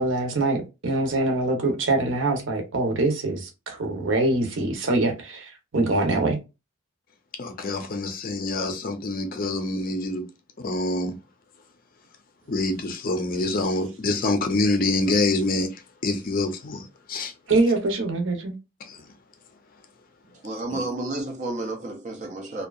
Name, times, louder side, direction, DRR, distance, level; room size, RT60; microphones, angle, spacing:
voice 1, 0.0-6.4 17.5-18.5, right 2 dB, 60° right, 0.8 m, -24 dB
voice 2, 7.4-10.2 10.6-11.1 12.5-15.7 16.0-17.3 18.8-19.0 20.7-20.8, left 2 dB, 45° left, 0.5 m, -26 dB
voice 3, 20.4-22.7, right 2 dB, 35° right, 0.4 m, -31 dB
2.7 x 2.2 x 2.3 m
head